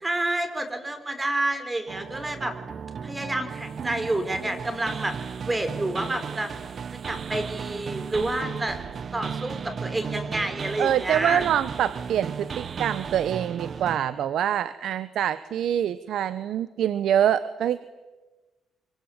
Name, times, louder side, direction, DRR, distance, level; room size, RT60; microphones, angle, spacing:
voice 1, 0.0-2.5 3.0-6.5 7.1-8.8 9.1-11.4, right 1 dB, 15° right, 9 dB, 5.1 m, -29 dB
sound 1, 1.9-14.0, right 6 dB, 50° right, 1.0 m, -35 dB
voice 2, 10.8-17.8, right 10 dB, 75° right, 14 dB, 1.0 m, -25 dB
25.5 x 25.0 x 9.1 m, 1.2 s
cardioid pair, 90°, 0 cm